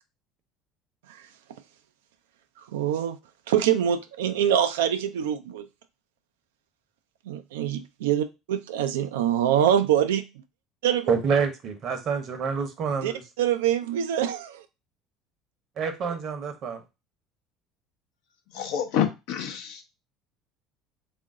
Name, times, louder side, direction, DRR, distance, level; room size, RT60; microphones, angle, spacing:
voice 1, 2.7-3.2 3.5-5.7 7.3-10.2 10.8-11.1 12.9-14.6, right 10 dB, 80° right, 9 dB, 0.3 m, -25 dB
voice 2, 11.1-13.2 15.8-16.8, right 5 dB, 55° right, 7 dB, 0.8 m, -27 dB
voice 3, 18.5-19.8, left 9 dB, 70° left, 5 dB, 0.7 m, -27 dB
3.6 x 2.5 x 3.6 m, 0.25 s
hypercardioid pair, 70°, 0 cm